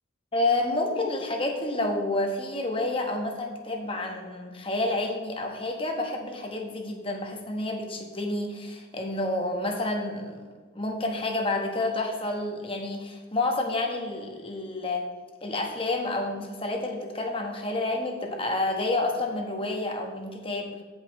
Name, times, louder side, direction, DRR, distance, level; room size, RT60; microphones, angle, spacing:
voice 1, 0.3-10.4 10.7-15.1 15.4-20.8, left 2 dB, 25° left, 2 dB, 1.1 m, -29 dB
16.0 x 5.4 x 3.1 m, 1.5 s
head